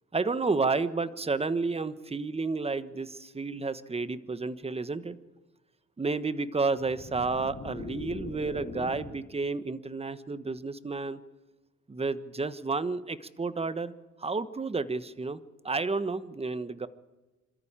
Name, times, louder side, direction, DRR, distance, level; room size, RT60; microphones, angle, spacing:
voice 1, 0.1-5.2 6.0-11.2 11.9-13.9 14.2-15.4 15.6-16.9, right 3 dB, 20° right, 14 dB, 1.2 m, -31 dB
sound 1, 6.8-9.3, left 4 dB, 55° left, 5.3 m, -41 dB
27.0 x 13.5 x 8.9 m, 1.2 s
cardioid pair, 90°, 30 cm